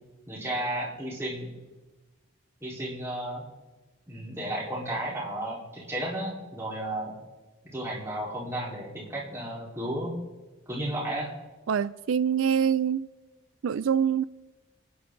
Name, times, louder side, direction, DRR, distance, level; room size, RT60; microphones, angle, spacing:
voice 1, 0.3-1.5 2.6-3.4 4.1-7.1 7.6-10.2 10.7-11.3, right 1 dB, 15° right, 4.2 m, -33 dB
voice 2, 11.7-13.1 13.6-14.2, right 8 dB, 75° right, 0.4 m, -25 dB
29.5 x 10.0 x 3.9 m
head